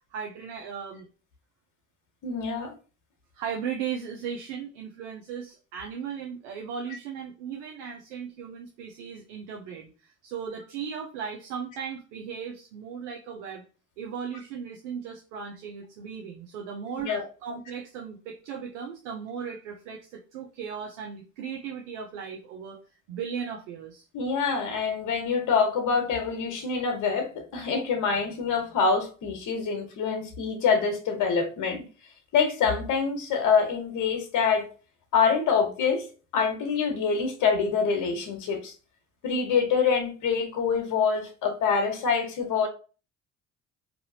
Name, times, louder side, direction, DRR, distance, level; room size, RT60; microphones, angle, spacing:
voice 1, 0.1-1.1 3.3-13.6 14.0-17.1 17.4-22.8 23.1-24.0, right 7 dB, 80° right, 1 dB, 0.6 m, -37 dB
voice 2, 2.2-2.7 17.0-17.2 24.1-31.8 32.3-34.7 35.1-36.0 36.3-38.7 39.2-42.7, left 5 dB, 55° left, 4 dB, 1.0 m, -25 dB
4.2 x 2.7 x 2.7 m, 0.36 s
hypercardioid pair, 50°, 36 cm